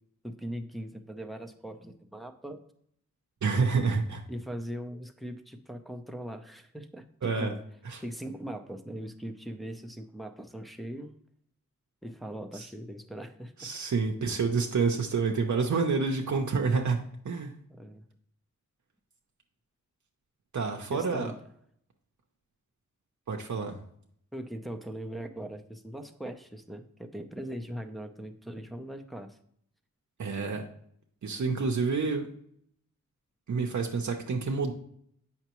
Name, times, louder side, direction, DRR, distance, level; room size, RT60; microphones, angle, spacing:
voice 1, 0.2-2.6 4.3-7.6 8.0-11.1 12.0-13.7 17.7-18.0 20.9-21.4 24.3-29.4, equal, ahead, 4 dB, 0.7 m, -40 dB
voice 2, 3.4-4.2 7.2-7.5 7.8-8.0 12.5-12.7 13.6-17.5 20.5-21.3 23.3-23.8 30.2-30.7 31.2-32.3 33.5-34.7, right 4 dB, 65° right, 2 dB, 0.8 m, -28 dB
7.9 x 5.8 x 3.0 m, 0.68 s
wide cardioid pair, 85°, 31 cm